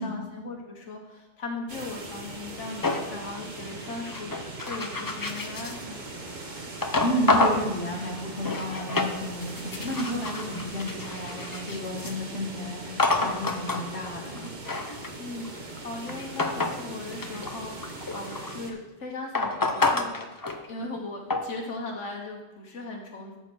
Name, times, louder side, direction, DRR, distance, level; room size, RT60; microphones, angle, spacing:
voice 1, 0.0-6.0 15.2-23.4, left 3 dB, 85° left, 1 dB, 1.4 m, -38 dB
sound 1, 1.7-18.7, right 2 dB, 40° right, 1.2 m, -40 dB
sound 2, 2.8-5.8 6.8-7.7 8.2-9.1 9.4-12.1 13.0-13.8 14.4-16.8 17.1-18.7 19.3-21.0 21.3-21.6, left 3 dB, 25° left, 0.5 m, -28 dB
voice 2, 7.0-14.5, equal, 65° left, 1 dB, 1.6 m, -32 dB
12.0 x 4.4 x 6.0 m, 1.1 s
omnidirectional pair, 1.2 m